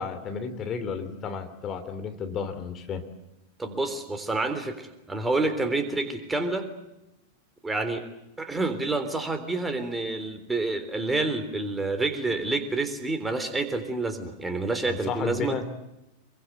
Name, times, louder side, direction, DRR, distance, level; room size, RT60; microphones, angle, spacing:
voice 1, 0.0-3.1 14.9-15.7, left 6 dB, 30° left, 7 dB, 2.9 m, -33 dB
voice 2, 3.6-6.7 7.6-8.0 8.4-15.5, right 2 dB, 10° right, 8 dB, 3.6 m, -28 dB
27.0 x 23.5 x 8.1 m, 0.91 s
figure-of-eight pair, 90°, 0 cm